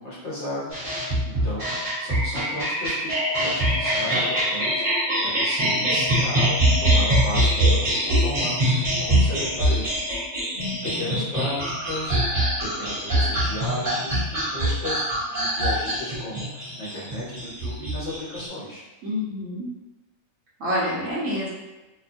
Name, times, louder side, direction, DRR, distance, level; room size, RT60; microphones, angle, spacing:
voice 1, 0.0-10.0 10.9-18.8, equal, 55° left, -8 dB, 1.2 m, -35 dB
sound 1, 0.7-18.5, equal, 35° right, 1.2 m, -23 dB
voice 2, 10.5-11.2 19.0-19.7 20.6-21.5, left 1 dB, 70° right, -6 dB, 1.2 m, -28 dB
3.0 x 2.1 x 2.5 m, 1.1 s
omnidirectional pair, 1.5 m